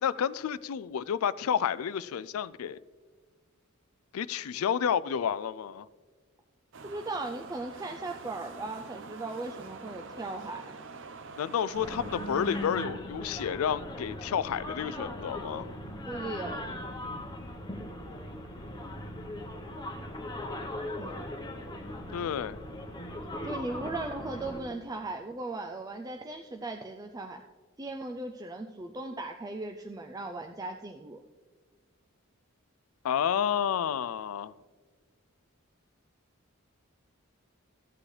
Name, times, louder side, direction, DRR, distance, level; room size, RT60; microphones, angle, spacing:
voice 1, 0.0-2.8 4.1-5.9 11.4-15.7 22.1-22.6 33.0-34.5, left 8 dB, 85° left, 0.4 m, -30 dB
sound 1, 6.7-12.9, right 4 dB, 60° right, 0.7 m, -46 dB
voice 2, 6.8-10.8 16.1-16.6 21.0-21.2 23.4-27.4 27.8-31.2, right 2 dB, 15° right, 0.4 m, -38 dB
sound 2, 11.7-24.6, left 1 dB, 20° left, 0.9 m, -39 dB
14.5 x 8.4 x 3.3 m
head